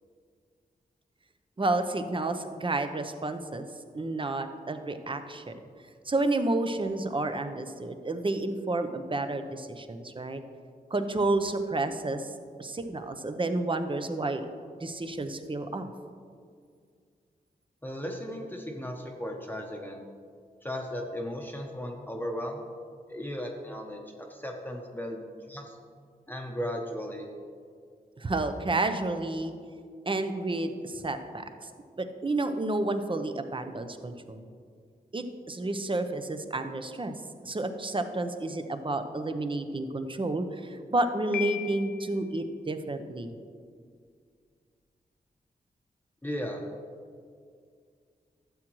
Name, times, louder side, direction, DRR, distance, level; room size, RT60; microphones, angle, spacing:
voice 1, 1.6-3.7 3.9-5.5 6.1-10.4 10.9-12.3 12.6-15.9 28.2-29.5 30.1-31.7 32.0-34.4 35.1-37.1 37.4-43.3, right 2 dB, 30° right, 8 dB, 0.7 m, -30 dB
voice 2, 17.8-20.0 20.6-22.6 23.1-24.0 24.3-25.8 26.3-27.2 46.2-46.6, equal, 10° left, 0 dB, 0.9 m, -36 dB
Piano, 41.3-42.3, left 14 dB, 75° left, 0.5 m, -36 dB
12.5 x 7.6 x 3.1 m, 2.2 s
cardioid pair, 65°, 17 cm